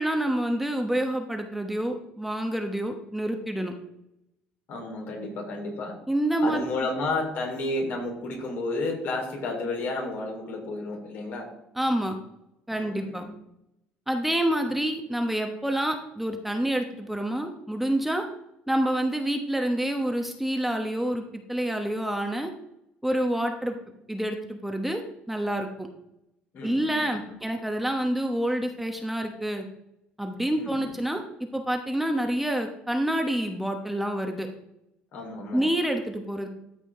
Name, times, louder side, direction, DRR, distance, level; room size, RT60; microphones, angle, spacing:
voice 1, 0.0-3.7 6.1-6.7 11.8-12.1 12.7-13.2 14.1-18.2 18.7-22.5 23.0-23.8 24.1-25.0 25.3-25.9 26.6-29.6 30.2-31.2 31.5-34.5 35.5-36.5, right 1 dB, 5° right, 4 dB, 1.1 m, -27 dB
voice 2, 4.7-6.0 6.4-11.5 12.7-13.3 26.5-27.4 30.5-31.0 35.1-35.7, left 2 dB, 65° left, 0 dB, 3.7 m, -32 dB
13.5 x 5.1 x 3.7 m, 0.83 s
cardioid pair, 95°, 4 cm